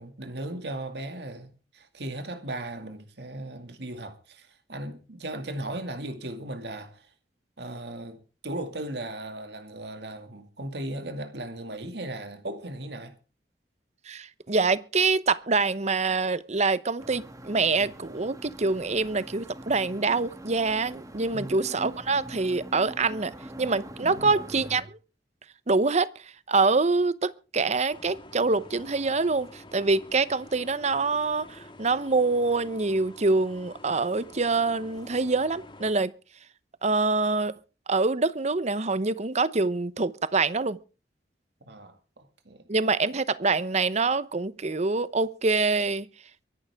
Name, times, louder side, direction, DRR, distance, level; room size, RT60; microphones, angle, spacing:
voice 1, 0.0-7.1 7.6-8.2 8.4-13.1 21.2-21.6 24.0-24.3 41.6-42.7, right 1 dB, 65° right, 2.3 m, -37 dB
voice 2, 14.1-25.0 25.7-36.1 36.8-37.5 37.9-40.8 42.7-46.1, right 3 dB, 40° right, 0.8 m, -25 dB
sound 1, 17.0-24.8, right 1 dB, 20° right, 2.5 m, -43 dB
sound 2, 27.9-35.9, left 1 dB, 30° left, 1.9 m, -48 dB
23.5 x 11.5 x 3.6 m
head